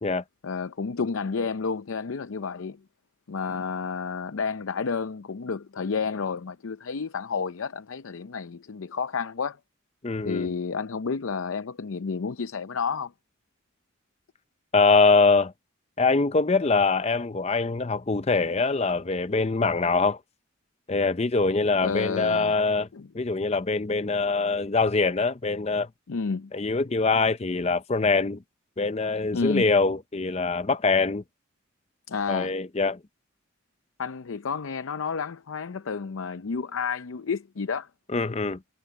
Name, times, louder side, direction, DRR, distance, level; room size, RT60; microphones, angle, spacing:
voice 1, 0.4-2.8 3.3-9.6 10.3-13.1 21.8-22.6 22.9-23.1 26.1-26.5 29.3-29.8 32.1-32.5 34.0-37.9, left 5 dB, 80° left, 0.6 m, -30 dB
voice 2, 10.0-10.5 14.7-15.5 16.0-20.2 20.9-22.9 23.1-25.9 26.5-28.4 28.8-31.2 32.3-33.0 38.1-38.6, left 3 dB, 30° left, 0.6 m, -23 dB
head